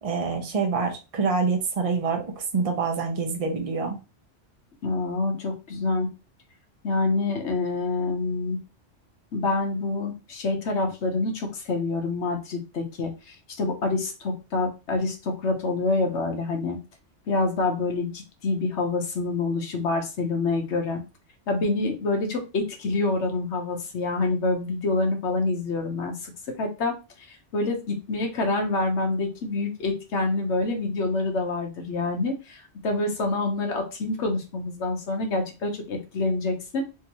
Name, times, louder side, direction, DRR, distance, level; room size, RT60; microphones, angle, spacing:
voice 1, 0.0-4.0, right 4 dB, 35° right, 4 dB, 0.7 m, -26 dB
voice 2, 4.8-6.1 6.8-8.6 9.3-16.8 17.3-21.0 21.5-26.3 26.6-26.9 27.3-36.8, left 3 dB, 70° left, 3 dB, 1.2 m, -27 dB
3.6 x 2.6 x 2.9 m, 0.29 s
omnidirectional pair, 1.2 m